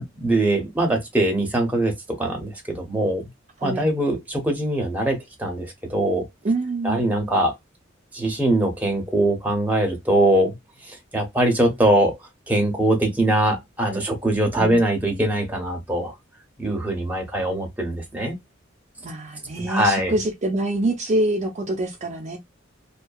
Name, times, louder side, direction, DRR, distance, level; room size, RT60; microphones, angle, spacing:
voice 1, 0.0-3.3 3.6-6.3 6.8-7.5 8.1-10.5 10.9-12.2 12.5-16.1 16.6-18.3 19.6-20.1, right 1 dB, 10° right, 0.7 m, -22 dB
voice 2, 3.6-3.9 6.4-7.1 14.6-14.8 19.0-22.4, right 1 dB, 35° right, 0.5 m, -25 dB
2.6 x 2.2 x 2.3 m
head